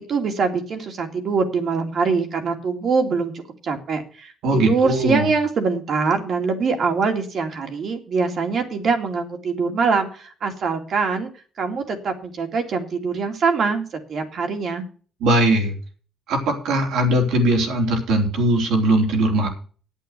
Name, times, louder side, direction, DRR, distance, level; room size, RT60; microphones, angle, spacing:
voice 1, 0.1-11.3 11.6-14.9, right 4 dB, 60° right, 4 dB, 2.5 m, -23 dB
voice 2, 4.4-5.3 15.2-15.7 16.3-19.5, right 1 dB, 85° right, 2 dB, 3.6 m, -20 dB
8.5 x 8.5 x 8.1 m, 0.40 s
cardioid pair, 90°, 0 cm